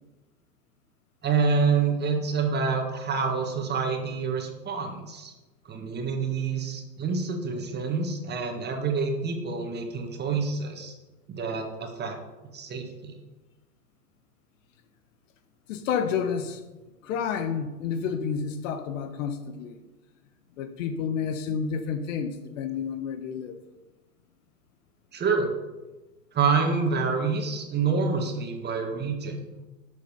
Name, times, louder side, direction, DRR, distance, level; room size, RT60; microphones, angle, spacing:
voice 1, 1.2-5.3 5.7-10.9 11.3-12.2 12.5-13.2 25.1-25.5 26.3-29.4, right 5 dB, 20° right, 1.7 m, -27 dB
voice 2, 15.7-16.6 17.0-19.8 20.6-23.6, left 6 dB, 50° left, 1.2 m, -30 dB
11.5 x 6.7 x 5.3 m
hypercardioid pair, 110°, 49 cm